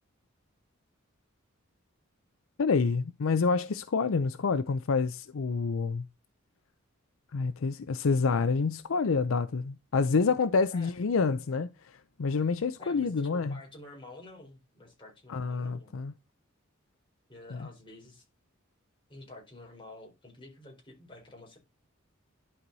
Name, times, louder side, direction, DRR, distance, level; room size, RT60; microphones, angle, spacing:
voice 1, 2.6-6.1 7.3-13.6 15.3-16.1 17.5-17.7, left 4 dB, 70° left, 0.5 m, -28 dB
voice 2, 12.8-15.9 17.3-18.2 19.1-21.6, left 2 dB, 25° left, 4.3 m, -49 dB
11.5 x 4.7 x 4.0 m
head